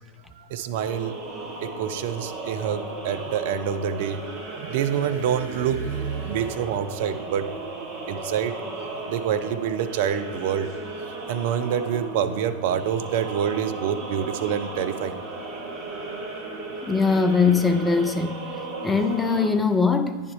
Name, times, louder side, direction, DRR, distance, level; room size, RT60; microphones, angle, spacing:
voice 1, 0.4-1.1 1.6-4.2 4.6-7.5 8.1-8.5 9.1-10.7 11.3-15.2, right 8 dB, 50° right, 10 dB, 0.4 m, -26 dB
sound 1, 0.7-19.5, right 2 dB, 35° right, 1.1 m, -36 dB
voice 2, 16.8-18.4 18.8-20.2, left 4 dB, 10° left, 8 dB, 0.5 m, -21 dB
9.5 x 3.5 x 4.7 m, 1.4 s
figure-of-eight pair, 90°, 0 cm